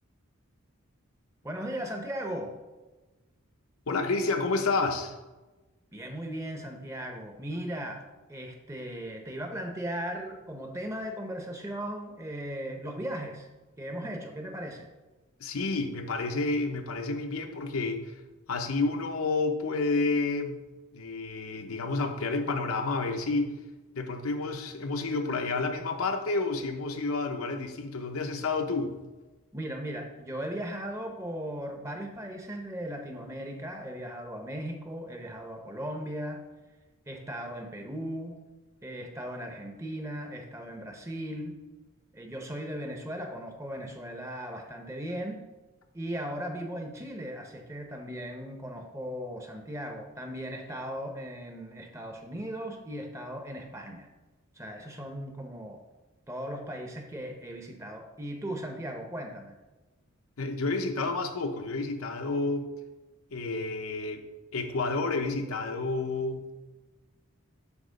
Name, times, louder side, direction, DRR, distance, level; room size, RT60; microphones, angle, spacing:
voice 1, 1.4-2.6 5.9-8.0 8.3-13.5 13.8-14.9 29.5-36.5 37.1-38.4 38.8-41.6 42.1-45.4 45.9-54.1 54.5-55.8 56.3-59.6, equal, 15° right, 3 dB, 0.7 m, -37 dB
voice 2, 3.9-5.1 15.4-18.1 18.5-20.6 20.9-23.5 23.9-28.9 60.4-62.7 63.3-64.2 64.5-66.6, left 3 dB, 80° left, 4 dB, 0.8 m, -30 dB
8.1 x 3.0 x 6.3 m, 1.1 s
head